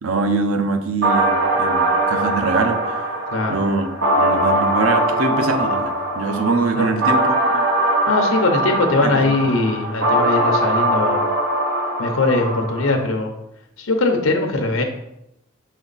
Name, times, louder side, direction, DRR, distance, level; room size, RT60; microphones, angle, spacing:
voice 1, 0.0-3.0 3.5-3.9 4.2-7.6 9.0-9.3, right 3 dB, 90° right, 6 dB, 0.7 m, -23 dB
sound 1, 1.0-13.0, right 1 dB, 60° right, 1.2 m, -21 dB
voice 2, 3.3-3.6 6.8-6.9 8.1-11.2 12.0-13.3 13.8-14.8, left 2 dB, 75° left, 3 dB, 0.8 m, -20 dB
5.8 x 4.3 x 4.0 m, 0.84 s
head